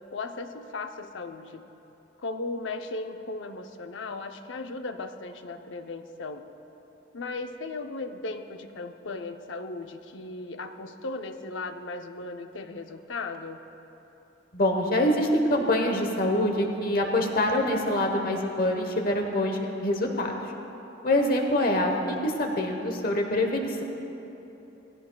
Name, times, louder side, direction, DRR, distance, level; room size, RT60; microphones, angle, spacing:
voice 1, 0.1-1.6 2.2-6.5 7.1-13.6, left 3 dB, 90° left, 7 dB, 0.7 m, -36 dB
voice 2, 14.5-20.3 21.0-23.8, left 1 dB, 50° left, 3 dB, 1.1 m, -25 dB
19.0 x 15.5 x 2.3 m, 3.0 s
head